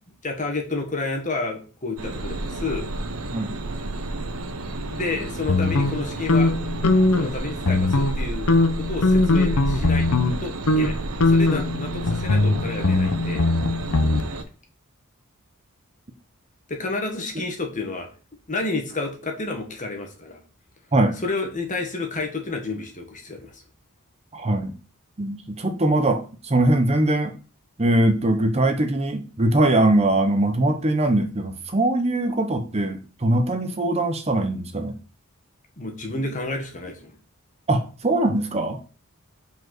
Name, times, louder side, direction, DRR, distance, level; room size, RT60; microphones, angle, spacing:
voice 1, 0.2-2.9 4.8-6.5 7.1-8.5 8.8-10.1 10.4-11.0 11.3-13.4 16.7-18.1 18.5-20.4 21.2-23.5 35.8-37.1, left 3 dB, 35° left, 2 dB, 1.7 m, -30 dB
sound 1, 2.0-14.4, right 2 dB, 80° right, 0.9 m, -31 dB
sound 2, 5.5-7.3 7.6-8.2 8.5-10.4 10.7-10.9 11.2-14.2, left 2 dB, 80° left, 0.8 m, -20 dB
voice 2, 24.3-24.8 25.2-27.3 27.8-34.9 37.7-38.8, right 1 dB, 30° right, 6 dB, 0.8 m, -21 dB
5.3 x 4.8 x 6.1 m, 0.36 s
head